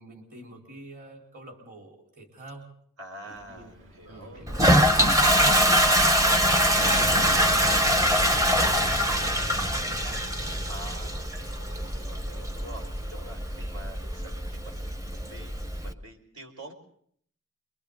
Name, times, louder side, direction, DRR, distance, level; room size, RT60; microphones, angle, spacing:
voice 1, 0.0-2.7 3.2-3.7 4.0-5.0 5.3-6.5 7.0-8.3 8.5-10.3 11.3-11.5 11.8-12.0, right 2 dB, 45° right, 0 dB, 4.1 m, -45 dB
voice 2, 3.0-5.0 10.7-15.5 15.8-16.7, right 1 dB, 80° right, 2 dB, 5.0 m, -46 dB
Wind, 3.3-10.6, right 1 dB, 60° right, 2.2 m, -42 dB
Toilet flush, 4.5-15.9, equal, 15° right, 0.9 m, -24 dB
28.0 x 23.5 x 3.9 m, 0.63 s
head